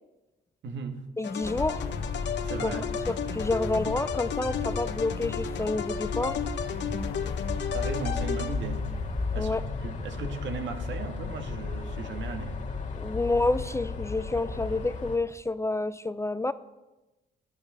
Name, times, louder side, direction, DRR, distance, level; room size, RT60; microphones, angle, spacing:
voice 1, 0.6-1.0 2.4-2.8 7.2-7.4 7.7-8.8 9.3-9.5 9.8-12.6, right 5 dB, 70° right, 6 dB, 1.7 m, -36 dB
sound 1, 1.2-9.0, left 7 dB, 65° left, 1.0 m, -34 dB
voice 2, 1.2-1.9 2.6-2.7 3.1-6.4 9.4-9.6 12.9-16.5, left 2 dB, 15° left, 14 dB, 0.4 m, -29 dB
sound 2, 1.4-15.2, left 4 dB, 40° left, 1.8 m, -34 dB
11.5 x 9.1 x 6.8 m, 1.1 s
cardioid pair, 90°, 20 cm